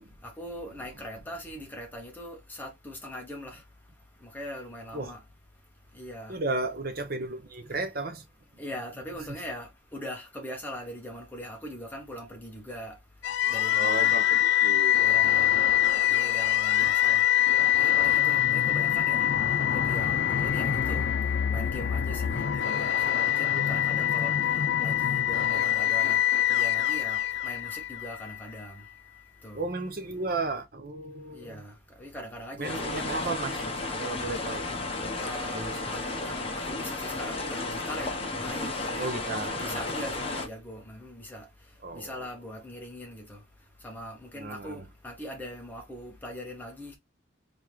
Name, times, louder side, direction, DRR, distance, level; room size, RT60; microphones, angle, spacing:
voice 1, 0.2-3.6 4.2-5.2 5.9-6.3 8.6-12.9 13.5-14.2 15.0-15.6 16.1-17.3 17.8-19.3 19.7-21.1 21.5-24.3 24.8-26.2 26.5-28.8 29.4-29.7 31.3-33.3 35.1-38.1 38.4-39.1 39.6-41.5 41.9-43.4 43.8-47.0, equal, 10° left, 1.2 m, -41 dB
voice 2, 6.3-8.2 13.8-15.2 23.5-23.8 29.5-31.5 32.6-33.7 34.0-34.6 35.5-35.7 39.0-39.8 41.8-42.2 44.4-44.8, right 2 dB, 50° right, 0.8 m, -34 dB
sound 1, 13.2-28.4, left 11 dB, 75° left, 0.5 m, -24 dB
sound 2, 32.6-40.5, left 2 dB, 30° left, 0.9 m, -33 dB
3.7 x 3.6 x 3.1 m
head